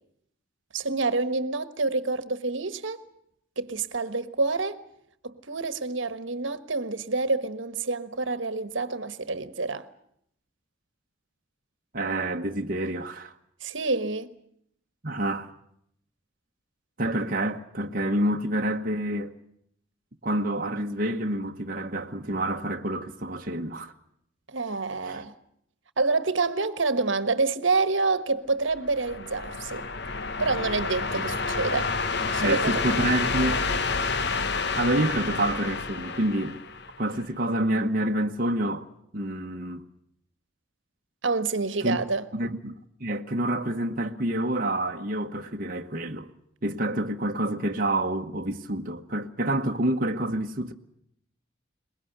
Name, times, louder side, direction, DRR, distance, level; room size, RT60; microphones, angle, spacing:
voice 1, 0.7-3.0 3.6-4.8 5.2-9.9 13.6-14.3 24.5-25.3 26.0-29.9 30.4-31.9 32.3-32.8 41.2-42.3, right 3 dB, 70° right, 1.4 m, -27 dB
voice 2, 11.9-13.3 15.0-15.5 17.0-19.3 20.2-23.9 25.0-25.2 31.1-31.2 32.4-33.6 34.8-36.6 37.0-38.8 39.1-39.8 41.8-42.0 42.3-42.7 43.0-46.3 46.6-50.7, right 1 dB, 45° right, 1.2 m, -28 dB
sound 1, 28.7-37.2, left 4 dB, 55° left, 1.1 m, -29 dB
23.0 x 21.0 x 8.0 m
head